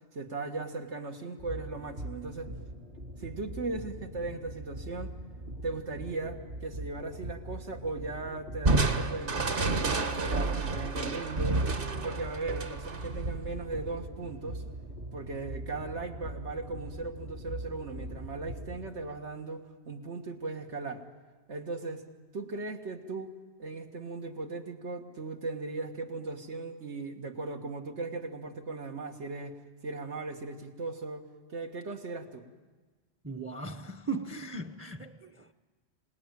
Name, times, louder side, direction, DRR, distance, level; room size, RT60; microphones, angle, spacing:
voice 1, 0.1-2.5 3.2-5.1 5.6-11.6 11.9-14.6 15.1-21.0 21.5-22.0 22.3-23.3 23.6-29.6 29.8-31.3 31.5-32.4, right 3 dB, 90° right, 2.0 m, -38 dB
sound 1, 1.4-18.9, right 1 dB, 70° right, 3.3 m, -42 dB
Crushing, 8.7-14.0, right 3 dB, 55° right, 1.4 m, -30 dB
voice 2, 33.2-35.5, right 3 dB, 15° right, 0.5 m, -38 dB
26.5 x 19.0 x 9.0 m
omnidirectional pair, 1.2 m